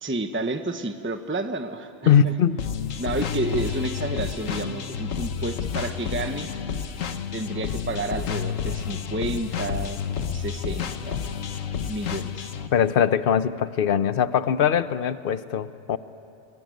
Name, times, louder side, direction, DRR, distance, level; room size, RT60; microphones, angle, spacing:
voice 1, 0.0-2.3 3.0-6.5 7.3-10.0 10.3-11.2 11.9-12.5, right 2 dB, 10° right, 7 dB, 0.9 m, -30 dB
voice 2, 2.1-2.6 12.7-16.0, left 8 dB, 50° left, 14 dB, 0.9 m, -21 dB
sound 1, 2.6-12.7, left 7 dB, 85° left, 1.4 m, -30 dB
30.0 x 21.5 x 9.3 m, 2.9 s
omnidirectional pair, 1.3 m